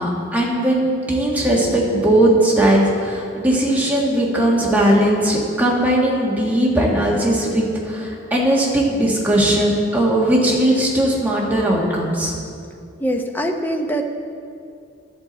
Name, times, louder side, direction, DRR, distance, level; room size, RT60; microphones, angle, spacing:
voice 1, 0.0-12.3, right 1 dB, 10° right, -4 dB, 1.6 m, -18 dB
voice 2, 13.0-14.0, equal, 10° left, 3 dB, 0.7 m, -23 dB
12.5 x 8.2 x 4.1 m, 2.4 s
head